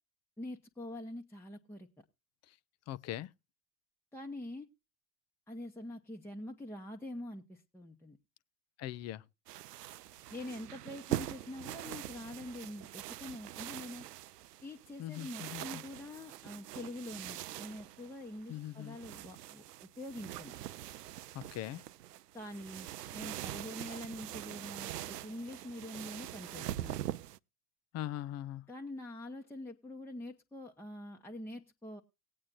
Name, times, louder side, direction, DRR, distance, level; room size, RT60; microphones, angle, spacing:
voice 1, 0.4-2.0 4.1-4.7 5.5-8.2 10.3-14.0 14.6-19.6 20.0-20.5 22.3-27.0 28.7-32.0, left 1 dB, 5° left, 1.1 m, -45 dB
voice 2, 2.9-3.3 8.8-9.2 15.0-15.8 18.5-19.0 21.3-21.8 27.9-28.6, left 13 dB, 35° left, 0.7 m, -41 dB
sound 1, 9.5-27.4, right 13 dB, 90° right, 0.6 m, -43 dB
19.5 x 8.6 x 2.5 m
hypercardioid pair, 95°, 46 cm